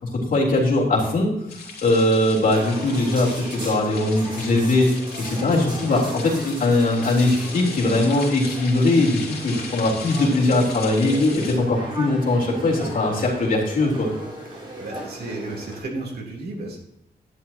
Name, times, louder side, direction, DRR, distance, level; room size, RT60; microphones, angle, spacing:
voice 1, 0.0-1.3 1.8-4.9 5.2-14.1, left 2 dB, 55° left, -2 dB, 3.5 m, -20 dB
sound 1, 1.5-11.6, left 4 dB, 75° left, 3.2 m, -38 dB
sound 2, 2.5-15.8, right 1 dB, 30° right, 4.2 m, -37 dB
voice 2, 14.5-16.8, right 2 dB, 70° right, -1 dB, 3.2 m, -33 dB
11.5 x 11.5 x 2.9 m, 0.81 s
wide cardioid pair, 170°, 17 cm